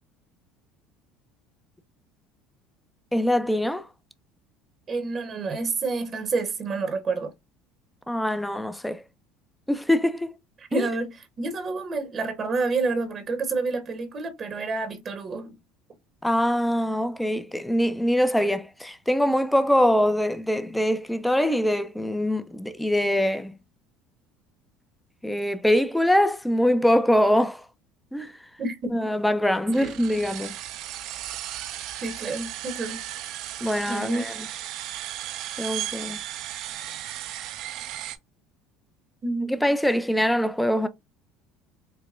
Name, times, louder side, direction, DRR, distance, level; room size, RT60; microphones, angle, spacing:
voice 1, 3.1-3.9 8.1-9.0 9.7-10.3 10.7-10.9 16.2-23.5 25.2-27.6 28.1-28.3 28.9-30.5 33.6-34.3 35.6-36.2 39.5-40.9, equal, 5° left, 0.5 m, -23 dB
voice 2, 4.9-7.3 10.6-15.6 28.6-29.1 29.8-29.9 32.0-33.0 33.9-34.2 39.2-39.6, right 3 dB, 35° right, 0.9 m, -29 dB
sound 1, 29.7-38.2, right 13 dB, 65° right, 0.5 m, -35 dB
4.8 x 2.1 x 2.4 m
supercardioid pair, 100°, 0 cm